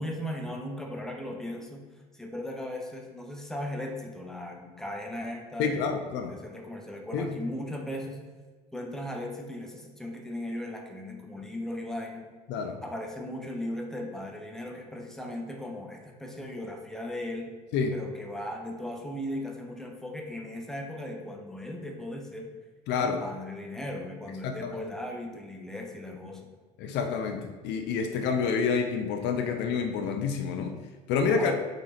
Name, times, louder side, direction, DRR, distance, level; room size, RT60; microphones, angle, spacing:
voice 1, 0.0-1.8 2.1-5.9 6.3-8.2 8.7-12.3 12.8-17.5 17.9-22.5 23.0-26.5 31.2-31.5, left 1 dB, ahead, 1 dB, 1.1 m, -37 dB
voice 2, 5.6-6.3 7.1-7.4 12.5-12.8 17.7-17.9 22.9-23.2 24.4-24.8 26.8-30.8 31.1-31.5, left 5 dB, 65° left, 5 dB, 0.8 m, -28 dB
5.3 x 4.5 x 4.3 m, 1.4 s
supercardioid pair, 90°, 19 cm